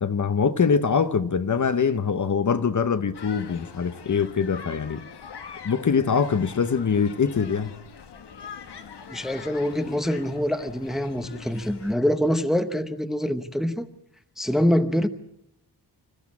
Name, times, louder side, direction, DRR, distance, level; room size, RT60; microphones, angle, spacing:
voice 1, 0.0-5.0 5.6-7.7, left 6 dB, 45° left, 0.9 m, -23 dB
sound 1, 3.1-12.0, left 6 dB, 70° left, 1.3 m, -43 dB
voice 2, 9.1-13.9 14.4-15.1, equal, ahead, 0.8 m, -25 dB
26.5 x 14.5 x 8.4 m
wide cardioid pair, 180°, 42 cm